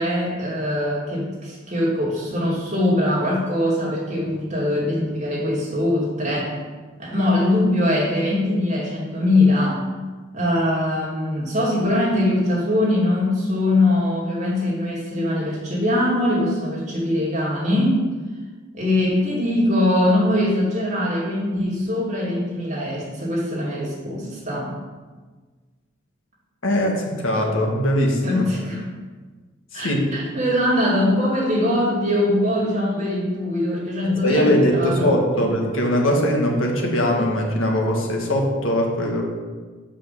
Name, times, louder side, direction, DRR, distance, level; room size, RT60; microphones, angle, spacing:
voice 1, 0.0-6.5 7.0-9.8 10.3-18.0 18.7-24.7 28.2-28.8 29.7-35.2, left 1 dB, 35° right, -6 dB, 2.4 m, -22 dB
voice 2, 26.6-28.4 29.7-30.1 34.0-39.2, equal, 75° left, 0 dB, 1.5 m, -21 dB
5.7 x 5.3 x 6.8 m, 1.4 s
head